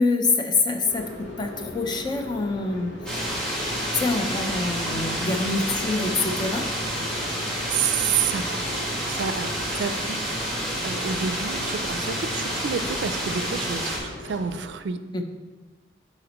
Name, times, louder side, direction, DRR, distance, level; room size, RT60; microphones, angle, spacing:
voice 1, 0.0-3.0 4.0-6.7 15.1-15.2, left 3 dB, 25° left, 5 dB, 0.5 m, -25 dB
sound 1, 0.8-14.7, left 1 dB, 85° left, 1.0 m, -40 dB
sound 2, 3.1-14.0, equal, 5° left, 1.5 m, -29 dB
voice 2, 7.7-9.5 9.7-15.0, right 7 dB, 75° right, 11 dB, 0.4 m, -29 dB
10.0 x 4.2 x 3.0 m, 1.3 s
head